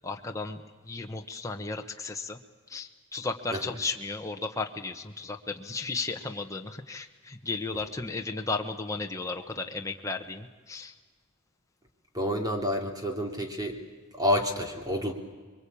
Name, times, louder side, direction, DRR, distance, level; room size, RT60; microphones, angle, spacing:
voice 1, 0.0-2.4 2.7-10.9, left 3 dB, 15° left, 3 dB, 1.1 m, -34 dB
voice 2, 12.1-13.8 14.1-15.1, left 1 dB, 20° right, 3 dB, 2.8 m, -28 dB
26.0 x 23.0 x 8.6 m, 1.4 s
head